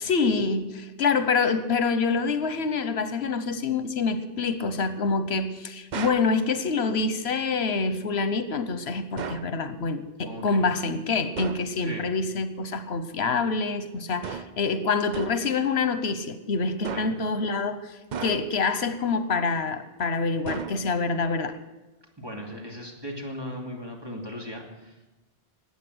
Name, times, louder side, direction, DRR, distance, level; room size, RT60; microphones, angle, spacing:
voice 1, 0.0-21.5, left 4 dB, 85° left, 12 dB, 1.2 m, -26 dB
sound 1, 5.9-6.4 9.2-9.6 11.4-11.7 14.2-14.6 15.1-15.5 16.8-17.3 18.1-18.7 20.5-21.1, right 6 dB, 50° right, 0.7 m, -35 dB
voice 2, 10.2-10.7 11.8-12.1 16.9-17.2 22.2-25.2, equal, 25° right, 0 dB, 2.8 m, -38 dB
20.0 x 8.5 x 7.9 m, 1.1 s
omnidirectional pair, 1.1 m